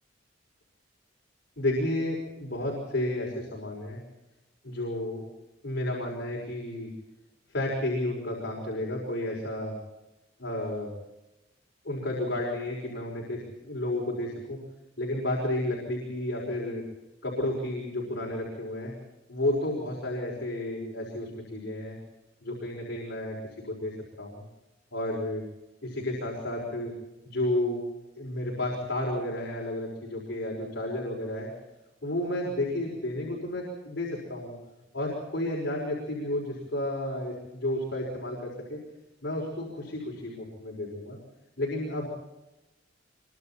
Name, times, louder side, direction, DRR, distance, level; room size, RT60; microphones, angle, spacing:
voice 1, 1.6-4.0 4.6-5.2 5.6-6.9 7.5-9.8 10.4-10.9 11.8-14.6 15.0-16.8 17.2-18.9 19.3-22.0 22.4-23.4 23.7-23.9 24.2-24.4 24.9-25.4 25.8-26.9 27.2-27.8 28.2-31.5 32.0-34.6 34.9-38.8 39.2-41.2 41.6-42.1, left 1 dB, 60° left, -2 dB, 5.4 m, -31 dB
25.0 x 24.0 x 4.4 m, 0.97 s
head